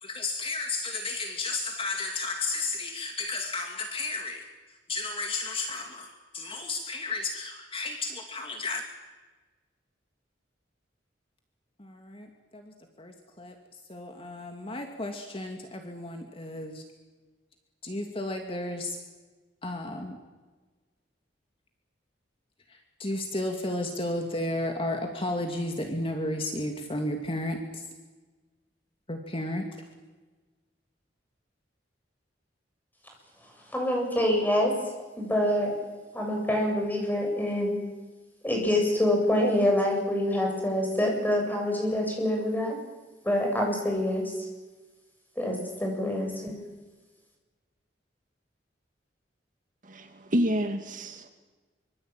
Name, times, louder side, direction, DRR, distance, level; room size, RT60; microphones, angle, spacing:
voice 1, 0.0-8.8 11.8-13.6 13.9-16.8 17.8-19.0 19.6-20.2 22.7-27.8 29.1-29.7, left 2 dB, 30° left, 3 dB, 2.5 m, -33 dB
voice 2, 33.7-34.7 35.2-35.8 36.1-37.8 38.4-42.7 43.2-44.3 45.4-46.6, left 1 dB, 10° left, 1 dB, 7.9 m, -26 dB
voice 3, 49.8-51.3, equal, 45° right, 6 dB, 2.3 m, -28 dB
25.0 x 25.0 x 9.1 m, 1.3 s
head